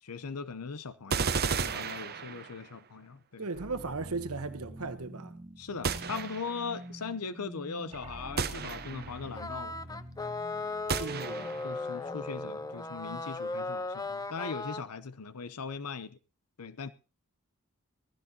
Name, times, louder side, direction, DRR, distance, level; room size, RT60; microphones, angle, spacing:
voice 1, 0.0-3.4 5.6-9.8 11.6-16.2 16.6-16.9, left 5 dB, 90° left, 0.8 m, -40 dB
sound 1, 1.1-2.7 5.8-6.7 8.4-9.3 10.9-11.8, right 5 dB, 45° right, 0.9 m, -33 dB
voice 2, 3.4-5.3 11.0-11.6, right 3 dB, 70° right, 1.2 m, -37 dB
sound 2, 3.5-13.5, right 1 dB, 30° right, 3.5 m, -47 dB
sound 3, 9.4-14.8, left 3 dB, 15° left, 0.7 m, -37 dB
19.0 x 15.0 x 2.9 m
head